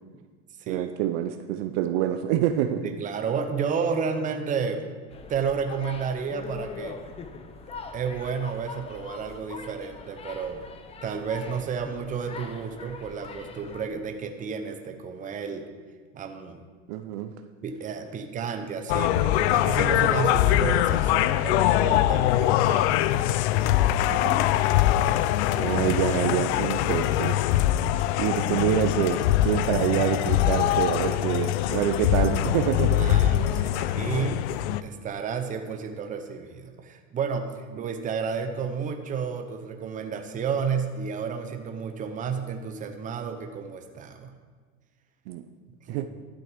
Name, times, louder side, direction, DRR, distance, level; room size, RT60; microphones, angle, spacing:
voice 1, 0.7-2.9 16.9-17.3 24.1-24.4 25.5-27.4 28.2-33.1 45.3-45.5 45.9-46.1, right 11 dB, 55° right, 8 dB, 0.6 m, -26 dB
voice 2, 2.8-4.9 5.3-7.0 7.9-10.7 11.0-15.7 16.1-16.6 17.6-23.3 23.6-24.2 28.3-28.4 33.0-34.5 34.8-44.3 45.9-46.1, right 6 dB, 20° right, 6 dB, 0.8 m, -32 dB
sound 1, 5.1-13.9, left 4 dB, 15° left, 0.6 m, -42 dB
sound 2, 18.9-34.8, left 13 dB, 65° left, 0.5 m, -23 dB
11.5 x 7.7 x 5.1 m, 1.5 s
supercardioid pair, 145°, 37 cm